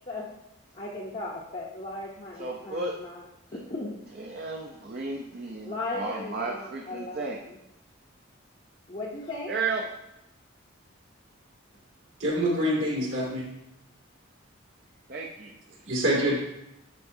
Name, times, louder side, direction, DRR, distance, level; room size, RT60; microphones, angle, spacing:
voice 1, 0.7-3.2 3.5-3.9 5.6-7.6 8.9-9.5, left 2 dB, 35° left, -4 dB, 0.7 m, -37 dB
voice 2, 2.4-3.0 4.2-7.4 9.5-9.9 15.1-15.6, right 3 dB, 45° right, -1 dB, 0.6 m, -33 dB
voice 3, 12.2-13.4 15.8-16.4, equal, 75° right, -4 dB, 2.4 m, -25 dB
10.5 x 4.6 x 2.7 m, 0.89 s
head